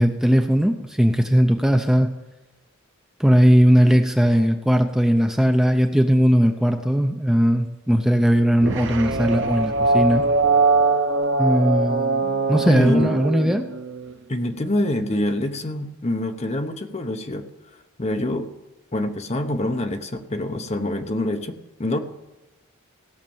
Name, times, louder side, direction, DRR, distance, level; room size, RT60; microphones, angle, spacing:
voice 1, 0.0-2.1 3.2-10.2 11.4-13.6, equal, 5° right, 5 dB, 0.6 m, -18 dB
sound 1, 8.6-14.1, right 3 dB, 60° right, 0.8 m, -22 dB
voice 2, 12.6-13.1 13.4-13.5 14.3-17.4 18.0-18.5 18.9-22.0, left 1 dB, 30° left, 7 dB, 1.0 m, -25 dB
16.5 x 6.6 x 7.2 m, 1.1 s
head